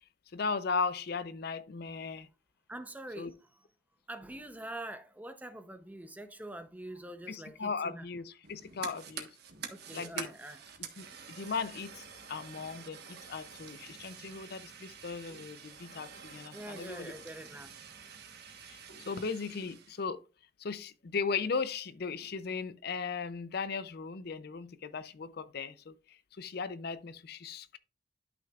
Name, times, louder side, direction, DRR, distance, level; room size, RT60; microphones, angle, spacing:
voice 1, 0.3-2.3 3.2-3.3 7.3-9.3 9.9-10.3 11.0-17.1 18.7-18.8 19.1-20.2 20.6-27.8, left 5 dB, 55° left, 0.5 m, -37 dB
voice 2, 2.7-3.3 4.1-8.0 9.7-10.6 16.5-17.7, right 1 dB, 10° right, 0.6 m, -44 dB
Fire, 8.4-20.0, right 6 dB, 55° right, 1.4 m, -47 dB
11.5 x 6.0 x 2.4 m
head